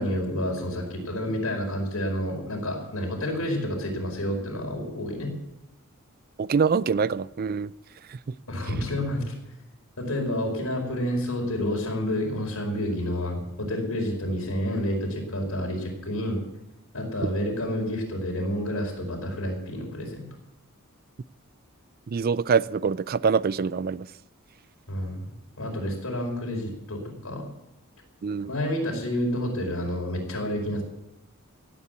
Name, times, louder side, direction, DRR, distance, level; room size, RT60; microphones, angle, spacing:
voice 1, 0.0-5.3 8.5-9.3 10.0-16.4 16.9-20.3 24.9-25.2 25.6-27.4 28.4-30.8, equal, 80° left, 4.8 m, -29 dB
voice 2, 6.4-7.7 22.1-24.1 28.2-28.5, right 5 dB, 45° right, 0.4 m, -24 dB
16.0 x 8.5 x 8.2 m
head